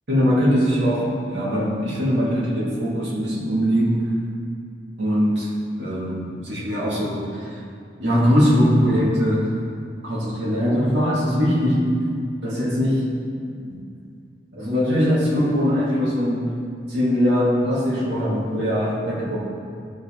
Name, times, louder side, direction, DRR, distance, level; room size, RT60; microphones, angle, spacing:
voice 1, 0.1-4.1 5.0-5.5 5.8-7.6 8.0-9.5 10.0-11.9 12.4-13.1 13.6-13.8 14.5-16.5 16.9-19.4, equal, 70° right, -6 dB, 2.4 m, -21 dB
14.0 x 5.1 x 3.8 m, 2.4 s
head